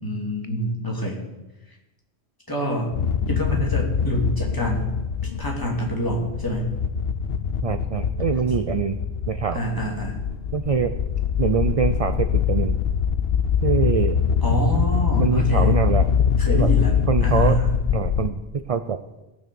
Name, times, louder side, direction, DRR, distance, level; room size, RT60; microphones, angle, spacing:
voice 1, 0.0-1.2 2.5-2.9 3.3-4.9 5.2-6.7 9.5-10.1 14.4-15.8 16.4-17.8, equal, 20° left, -2 dB, 2.8 m, -26 dB
sound 1, 2.9-18.3, left 7 dB, 65° left, 0.9 m, -23 dB
voice 2, 7.6-9.0 9.3-9.6 10.5-10.9 11.4-12.8 13.6-14.2 15.2-16.1 16.5-16.7 17.1-17.5 17.9-19.0, right 6 dB, 45° right, 9 dB, 0.5 m, -24 dB
17.5 x 6.2 x 6.9 m, 1.0 s
omnidirectional pair, 1.1 m